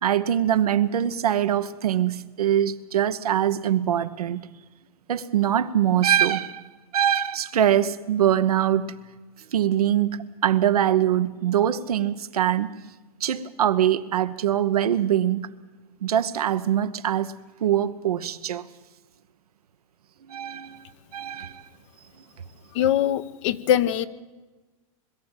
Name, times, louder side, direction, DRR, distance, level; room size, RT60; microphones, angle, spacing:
voice 1, 0.0-4.4 5.1-6.6 6.9-8.9 9.5-12.7 13.2-15.5 16.0-17.3 17.6-18.7 20.3-20.8 21.1-21.6, right 10 dB, 85° right, 1.1 m, -23 dB
voice 2, 22.7-24.1, left 11 dB, 55° left, 1.1 m, -22 dB
22.0 x 13.0 x 9.0 m
hypercardioid pair, 125°, 19 cm